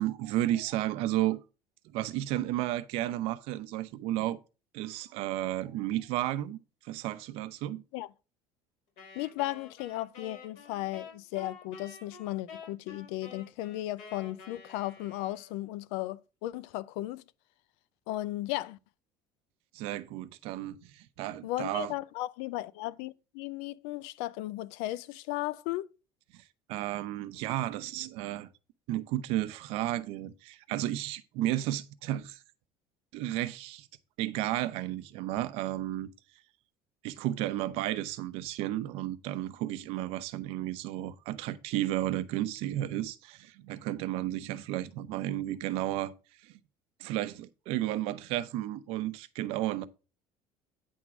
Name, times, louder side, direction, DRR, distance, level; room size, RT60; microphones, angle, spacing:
voice 1, 0.0-1.4 1.9-4.4 4.7-6.6 6.8-7.8 19.7-21.9 26.7-28.5 28.9-32.4 33.1-33.9 34.2-36.1 37.0-46.1 46.4-46.5 47.0-49.8, right 14 dB, 70° right, 0.7 m, -33 dB
Wind instrument woodwind instrument, 9.0-15.8, left 5 dB, 65° left, 4.8 m, -50 dB
voice 2, 9.1-17.2 18.1-18.8 21.4-25.9, left 16 dB, 90° left, 0.5 m, -35 dB
9.5 x 3.7 x 6.0 m
cardioid pair, 165°, 11 cm